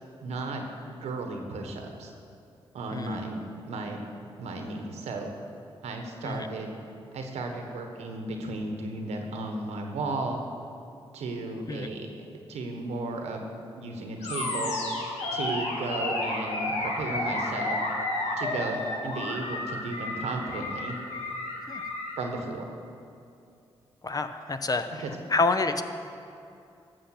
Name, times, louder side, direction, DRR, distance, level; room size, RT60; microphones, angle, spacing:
voice 1, 0.2-0.6 0.9-2.1 2.7-3.4 3.7-4.0 4.4-5.3 5.8-6.7 7.1-10.4 11.1-12.1 12.5-13.5 13.8-14.8 15.3-17.8 18.4-21.0 22.2-22.6 25.0-25.1, right 3 dB, 90° right, 3 dB, 1.2 m, -34 dB
Animal, 14.2-22.2, left 2 dB, 85° left, 1.6 m, -31 dB
voice 2, 24.0-25.0 25.3-25.8, left 3 dB, 35° left, 9 dB, 0.8 m, -28 dB
12.5 x 7.2 x 5.9 m, 2.6 s
cardioid pair, 50°, 11 cm